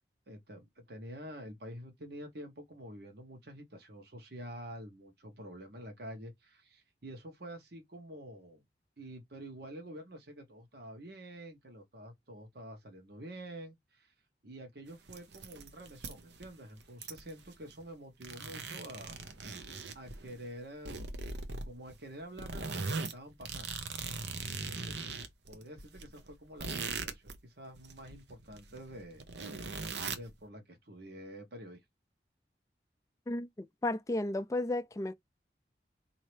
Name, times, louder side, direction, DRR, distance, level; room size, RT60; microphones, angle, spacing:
voice 1, 0.3-8.6 9.0-14.1 14.4-19.7 19.9-21.1 21.6-23.7 24.5-25.0 25.5-29.7 30.0-31.8, right 1 dB, 65° right, 1.1 m, -48 dB
sound 1, 14.9-16.5 16.8-17.9 18.2-20.4 20.8-22.0 22.4-27.4 27.7-30.3, right 4 dB, 80° right, 0.8 m, -40 dB
voice 2, 33.3-35.1, left 2 dB, 20° left, 0.3 m, -33 dB
4.2 x 2.7 x 3.2 m
head